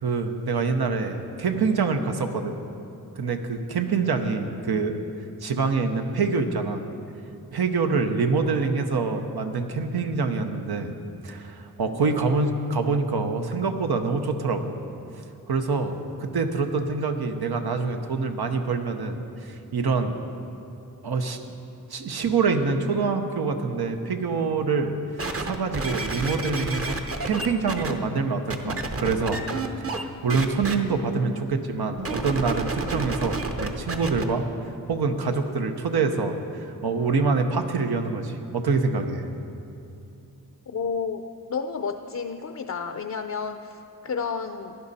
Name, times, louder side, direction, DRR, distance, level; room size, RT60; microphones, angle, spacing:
voice 1, 0.0-2.6 3.2-5.0 5.4-6.8 7.5-10.9 11.2-14.8 15.5-20.2 21.0-21.5 21.9-24.9 25.4-29.4 29.8-34.5 34.9-36.4 36.8-39.3, right 4 dB, 90° right, 6 dB, 0.9 m, -25 dB
sound 1, 25.2-27.9 28.5-30.0 30.3-30.7 32.0-34.2 34.9-35.0, right 3 dB, 40° right, 0.8 m, -30 dB
voice 2, 40.7-41.2 41.5-44.8, left 5 dB, 50° left, 7 dB, 0.5 m, -31 dB
15.0 x 10.5 x 4.1 m, 2.7 s
wide cardioid pair, 70°, 37 cm